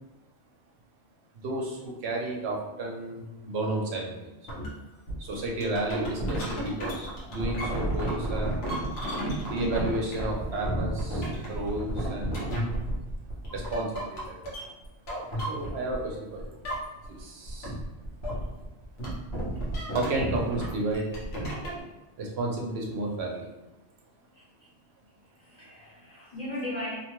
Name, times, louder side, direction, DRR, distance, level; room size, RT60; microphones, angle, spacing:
voice 1, 1.3-4.7 5.2-8.6 9.5-12.5 13.5-14.5 15.4-16.6 17.1-17.7 19.9-21.5 22.2-23.5, right 2 dB, 70° right, -1 dB, 0.9 m, -32 dB
sound 1, 4.5-4.7 5.1-16.1 16.4-17.2 17.5-21.8, right 1 dB, 70° left, 1.1 m, -32 dB
voice 2, 25.3-27.0, left 1 dB, 40° left, -9 dB, 1.0 m, -37 dB
2.8 x 2.2 x 3.0 m, 1.1 s
omnidirectional pair, 1.1 m